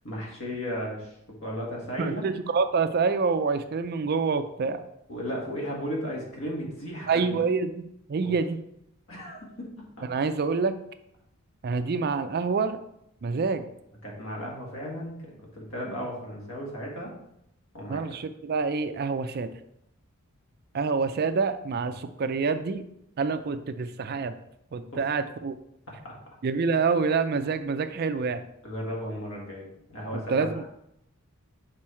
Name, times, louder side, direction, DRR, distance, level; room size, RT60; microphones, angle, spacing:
voice 1, 0.0-2.3 5.1-7.3 8.2-8.3 9.1-9.7 10.0-10.1 14.0-17.1 17.7-18.2 24.8-25.1 26.0-26.1 28.6-30.7, equal, 60° left, -2 dB, 1.9 m, -35 dB
voice 2, 2.0-4.8 7.1-7.8 8.1-8.6 10.1-10.8 11.6-12.8 13.2-13.6 17.9-19.5 20.7-22.8 23.2-24.3 24.7-25.6 26.4-28.4 30.3-30.7, right 4 dB, 45° right, 10 dB, 0.4 m, -27 dB
6.2 x 4.5 x 4.3 m, 0.78 s
head